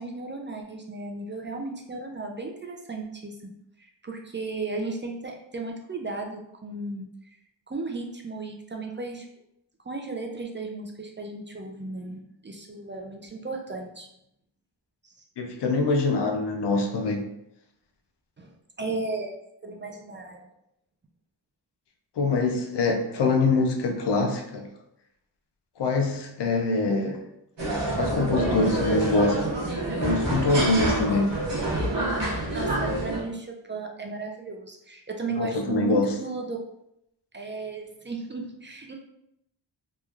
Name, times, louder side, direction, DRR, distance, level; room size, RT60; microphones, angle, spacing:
voice 1, 0.0-3.4 3.8-7.1 7.7-9.3 9.9-14.1 15.0-15.1 18.4-18.5 18.8-19.3 19.6-20.5 32.3-36.6 37.3-38.9, right 3 dB, 30° right, 2 dB, 0.3 m, -35 dB
voice 2, 15.4-17.3 22.2-24.7 25.8-27.2 27.9-29.4 30.0-31.4 35.4-36.1, left 3 dB, 75° left, 5 dB, 0.5 m, -24 dB
sound 1, 27.6-33.2, right 1 dB, 80° right, 1.0 m, -27 dB
3.0 x 2.2 x 2.3 m, 0.79 s
wide cardioid pair, 55°, 42 cm